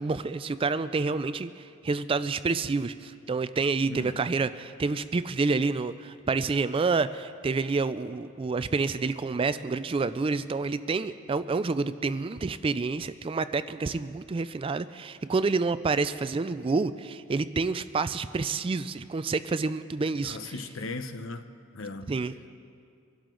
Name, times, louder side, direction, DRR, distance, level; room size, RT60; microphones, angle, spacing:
voice 1, 0.0-20.5 22.1-22.3, right 4 dB, 25° right, 0.3 m, -28 dB
voice 2, 3.9-4.2 20.2-21.5 21.7-22.1, left 3 dB, 65° left, 0.8 m, -37 dB
25.0 x 12.0 x 3.8 m
head